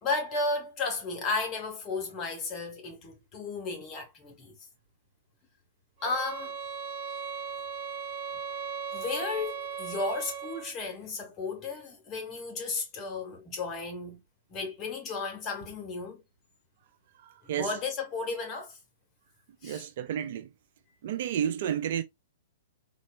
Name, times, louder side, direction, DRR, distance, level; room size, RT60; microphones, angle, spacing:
voice 1, 0.0-4.5 6.0-6.5 8.9-14.2 14.5-16.2 17.6-18.8 19.6-19.9, left 3 dB, 30° left, 1.9 m, -34 dB
sound 1, 6.0-10.8, right 6 dB, 40° right, 1.5 m, -37 dB
voice 2, 17.2-17.7 19.6-20.5 21.0-22.0, right 9 dB, 55° right, 0.5 m, -31 dB
4.1 x 3.0 x 2.5 m
hypercardioid pair, 120°, 0 cm